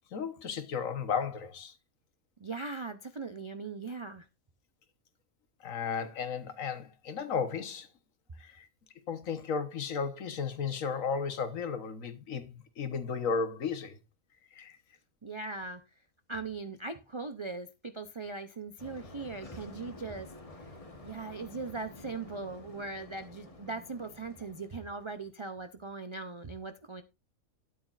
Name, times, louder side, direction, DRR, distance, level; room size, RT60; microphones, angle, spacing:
voice 1, 0.1-1.8 5.6-7.9 8.4-8.7 9.1-14.0 14.5-14.8, left 6 dB, 70° left, 1.5 m, -34 dB
voice 2, 2.4-4.3 15.2-15.8 16.3-20.3 21.0-27.0, right 3 dB, 45° right, 0.4 m, -39 dB
sound 1, 18.8-25.3, left 2 dB, 25° left, 1.2 m, -50 dB
12.5 x 9.4 x 2.5 m
omnidirectional pair, 1.5 m